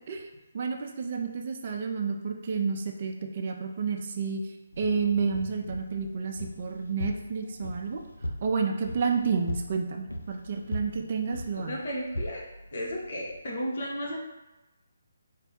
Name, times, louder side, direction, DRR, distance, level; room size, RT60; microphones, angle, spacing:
voice 1, 0.1-8.0 8.4-11.8, right 5 dB, 45° right, 3 dB, 0.5 m, -30 dB
sound 1, 4.7-13.4, equal, 90° left, 0.4 m, -39 dB
voice 2, 11.5-12.4 12.7-14.2, equal, 55° left, -3 dB, 1.1 m, -34 dB
4.4 x 2.2 x 4.1 m, 1.0 s
figure-of-eight pair, 145°, 0 cm